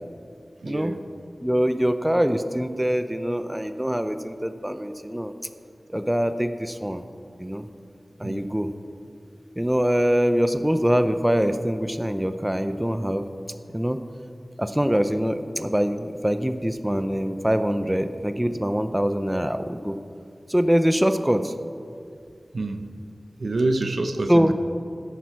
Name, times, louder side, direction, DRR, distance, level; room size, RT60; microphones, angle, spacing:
voice 1, 0.6-1.0 8.2-8.5 22.5-22.8 23.4-24.5, right 2 dB, 80° right, 7 dB, 0.7 m, -26 dB
voice 2, 1.4-5.3 5.9-7.0 7.4-7.7 8.2-8.7 9.6-13.3 13.7-14.0 14.6-20.0 20.5-21.5 24.3-24.5, equal, 10° right, 9 dB, 0.6 m, -23 dB
13.0 x 10.5 x 4.7 m, 2.4 s
wide cardioid pair, 70°, 0 cm